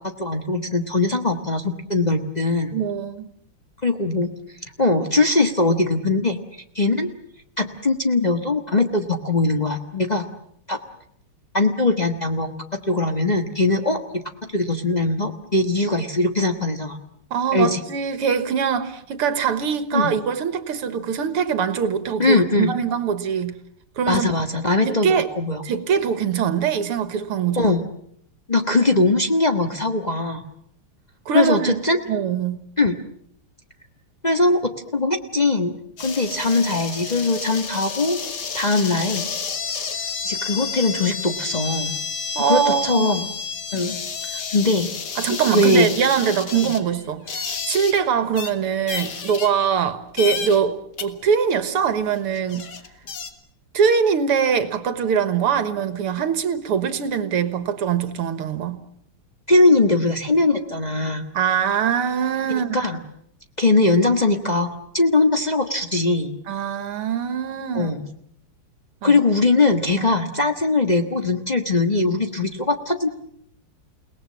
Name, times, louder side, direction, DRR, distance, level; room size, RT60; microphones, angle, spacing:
voice 1, 0.2-2.8 3.8-4.3 4.8-6.4 6.7-7.1 7.6-10.2 10.7-10.8 11.5-14.0 14.5-17.0 17.5-17.8 19.9-20.1 22.2-22.7 24.1-25.6 27.6-27.8 28.5-30.4 31.3-32.0 32.8-33.0 34.2-35.7 36.0-38.2 38.5-39.3 40.2-42.0 42.4-43.3 43.7-44.0 44.3-44.9 45.5-45.9 46.6-46.7 59.5-61.3 62.5-63.0 63.6-66.3 67.7-68.0 69.0-73.1, left 2 dB, 20° left, 4 dB, 1.3 m, -20 dB
voice 2, 2.7-3.3 17.3-23.6 24.0-24.3 24.9-25.3 25.6-27.8 31.3-31.8 32.1-32.6 42.4-43.1 45.2-52.7 53.7-58.8 61.3-62.9 66.5-67.9 69.0-69.1 70.0-70.1, right 7 dB, 85° right, 11 dB, 2.4 m, -23 dB
Random Balloon Sounds, 36.0-48.0 48.3-48.5 48.9-49.9 50.2-50.6 51.0-51.1 52.0-52.1 52.3-53.3, left 5 dB, 50° left, 2.1 m, -30 dB
29.5 x 19.0 x 7.5 m, 0.68 s
omnidirectional pair, 2.4 m